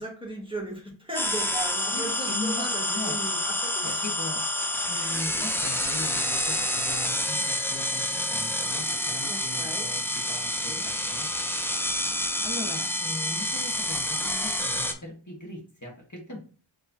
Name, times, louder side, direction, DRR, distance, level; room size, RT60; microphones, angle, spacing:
voice 1, 0.0-4.0 9.3-9.9 10.6-10.8, right 1 dB, 10° right, -1 dB, 1.6 m, -37 dB
sound 1, 1.1-14.9, left 1 dB, 5° left, 0.5 m, -28 dB
voice 2, 1.9-3.2 3.8-4.4 4.8-11.3 12.4-16.4, left 2 dB, 35° left, -2 dB, 1.5 m, -39 dB
4.7 x 3.2 x 2.8 m, 0.39 s
wide cardioid pair, 40°, 48 cm